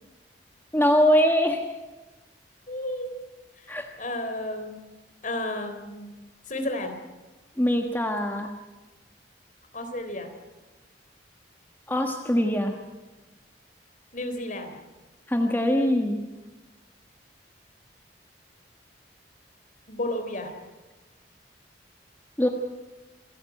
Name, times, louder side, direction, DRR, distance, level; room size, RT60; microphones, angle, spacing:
voice 1, 0.7-1.6 3.7-3.9 7.6-8.5 11.9-12.8 15.3-16.2 22.4-22.5, equal, 10° left, 3 dB, 1.3 m, -22 dB
voice 2, 2.7-3.2 3.6-4.8 5.2-6.1 6.5-6.9 9.7-10.3 14.1-14.8 19.9-20.5, left 1 dB, 45° left, 6 dB, 3.6 m, -32 dB
27.0 x 14.0 x 9.0 m, 1.2 s
head